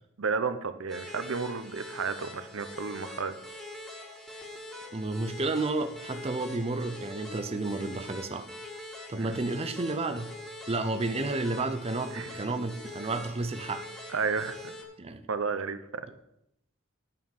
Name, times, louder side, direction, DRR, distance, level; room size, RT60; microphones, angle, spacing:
voice 1, 0.2-3.3 9.2-9.4 12.1-12.4 14.1-14.6 15.3-16.1, right 5 dB, 80° right, 11 dB, 0.7 m, -32 dB
sound 1, 0.9-14.8, left 1 dB, ahead, 1.7 m, -44 dB
voice 2, 4.9-8.5 9.1-10.3 10.7-13.8 15.0-15.2, right 2 dB, 30° right, 8 dB, 0.6 m, -31 dB
9.2 x 5.6 x 7.2 m, 0.80 s
head